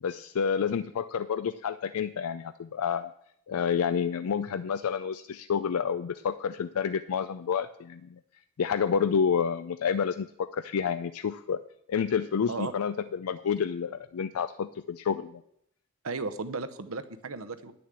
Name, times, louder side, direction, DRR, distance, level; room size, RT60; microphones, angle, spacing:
voice 1, 0.0-3.1 3.5-8.2 8.6-11.6 11.9-15.4, left 6 dB, 75° left, 12 dB, 0.4 m, -29 dB
voice 2, 16.0-17.7, right 3 dB, 70° right, 10 dB, 0.9 m, -35 dB
10.5 x 7.0 x 7.6 m, 0.72 s
head